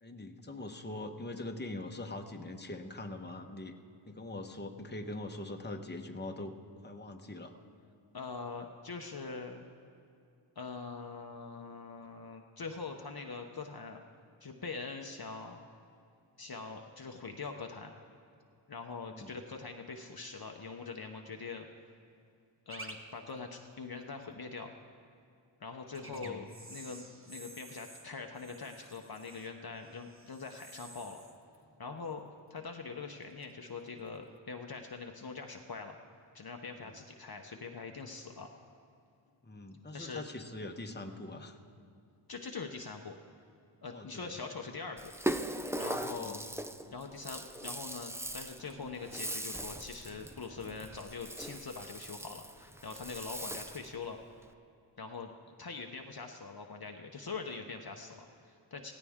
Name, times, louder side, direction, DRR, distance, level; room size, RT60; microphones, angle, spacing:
voice 1, 0.0-3.7 4.0-6.5 6.8-7.6 19.0-19.4 26.0-26.4 39.4-41.6 43.9-44.4 46.0-46.5, left 2 dB, 20° left, 4 dB, 1.0 m, -43 dB
voice 2, 8.1-9.6 10.6-14.0 14.4-15.6 16.4-17.9 18.7-21.7 22.7-24.7 25.6-31.2 31.8-32.2 32.5-36.0 36.3-38.5 39.9-40.2 42.3-43.2 43.8-45.1 45.8-46.4 46.9-54.2 55.0-58.9, left 4 dB, 50° left, 3 dB, 0.9 m, -43 dB
sound 1, 22.7-22.9 23.3-23.4 25.9-32.7 33.0-33.5 34.2-34.4, right 2 dB, 25° right, 1.2 m, -52 dB
Rattle (instrument), 45.0-54.0, right 1 dB, 5° right, 0.5 m, -40 dB
17.0 x 16.0 x 3.6 m, 2.5 s
wide cardioid pair, 60°, 48 cm